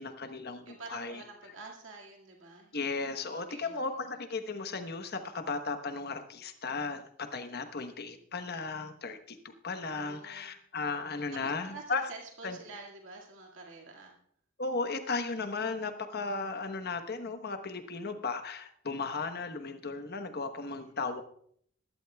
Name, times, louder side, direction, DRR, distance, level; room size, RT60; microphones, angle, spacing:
voice 1, 0.0-1.2 2.7-12.0 12.4-12.6 14.6-21.2, left 4 dB, 50° left, 7 dB, 1.1 m, -36 dB
voice 2, 0.6-2.8 3.2-3.8 9.9-10.5 11.4-14.1, right 3 dB, 75° right, -1 dB, 2.1 m, -48 dB
21.0 x 12.0 x 2.3 m, 0.64 s
head